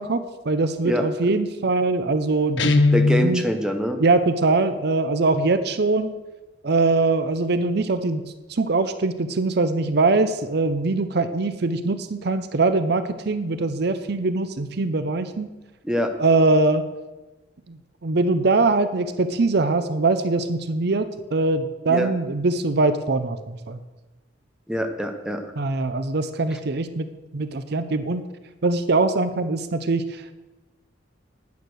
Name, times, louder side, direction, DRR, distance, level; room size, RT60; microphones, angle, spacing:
voice 1, 0.0-2.9 3.2-3.4 4.0-6.1 6.6-15.5 16.2-16.8 17.7-23.8 25.6-28.3 28.6-30.2, right 3 dB, 60° right, 11 dB, 0.7 m, -22 dB
Guitar, 2.6-3.4, left 3 dB, 75° left, 0.8 m, -18 dB
voice 2, 2.9-4.0 15.8-16.1 21.9-22.1 24.7-25.4 26.5-26.6, equal, 5° right, 4 dB, 1.0 m, -24 dB
9.8 x 9.3 x 6.4 m, 1.1 s
head